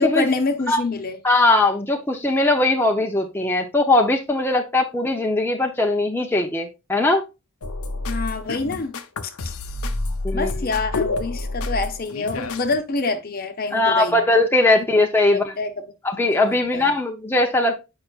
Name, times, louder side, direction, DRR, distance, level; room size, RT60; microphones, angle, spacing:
voice 1, 0.0-1.2 8.1-9.0 9.2-9.3 10.3-14.2 15.3-15.8 16.2-16.9, left 3 dB, 40° left, 0.9 m, -26 dB
voice 2, 1.2-7.2 10.2-10.7 13.7-15.5 16.0-17.8, left 2 dB, 10° left, 0.7 m, -20 dB
sound 1, 7.6-12.8, left 2 dB, 80° left, 0.8 m, -28 dB
8.4 x 5.6 x 2.4 m
head